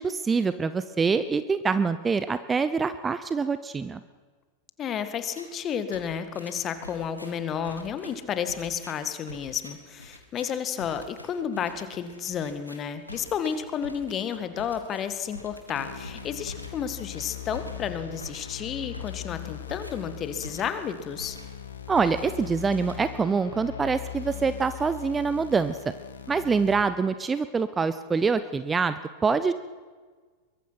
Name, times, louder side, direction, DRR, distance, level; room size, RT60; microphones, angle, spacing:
voice 1, 0.0-4.0 21.9-25.8 26.3-29.5, right 5 dB, 15° right, 13 dB, 0.8 m, -25 dB
voice 2, 4.8-21.4, left 8 dB, 30° left, 10 dB, 2.0 m, -32 dB
sound 1, 5.2-5.6 5.9-20.9 21.2-21.7 22.0-23.4, left 1 dB, 85° left, 2.6 m, -46 dB
sound 2, 15.8-26.8, left 9 dB, 70° left, 1.8 m, -40 dB
23.0 x 22.0 x 5.9 m, 1.5 s
figure-of-eight pair, 90°, 0 cm